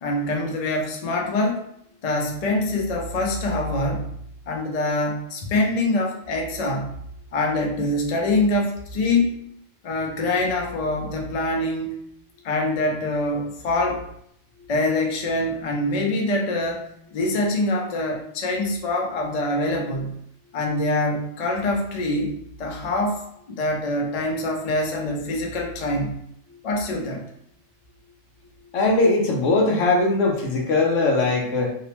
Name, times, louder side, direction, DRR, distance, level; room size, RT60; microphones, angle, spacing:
voice 1, 0.0-1.6 2.0-4.2 4.5-7.0 7.3-9.4 9.8-12.0 12.4-14.0 14.7-20.2 20.5-22.3 22.6-26.2 26.6-27.3, left 2 dB, 65° left, 1 dB, 0.4 m, -24 dB
voice 2, 28.7-31.7, left 2 dB, 80° left, 0 dB, 1.0 m, -20 dB
2.8 x 2.0 x 2.9 m, 0.71 s
omnidirectional pair, 1.3 m